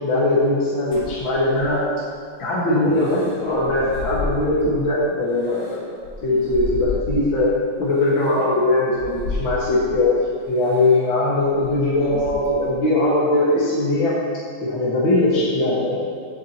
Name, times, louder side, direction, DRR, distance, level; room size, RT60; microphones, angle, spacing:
voice 1, 0.0-1.8 2.4-5.9 6.2-7.5 7.8-10.1 10.5-14.1 14.6-15.9, left 2 dB, 65° left, -8 dB, 2.3 m, -20 dB
sound 1, 0.9-2.1 2.9-4.9 5.3-7.6 8.2-8.3 8.9-10.1 10.6-11.0 11.4-12.7, left 3 dB, 45° left, 1.6 m, -32 dB
15.0 x 7.5 x 2.9 m, 2.3 s
omnidirectional pair, 2.4 m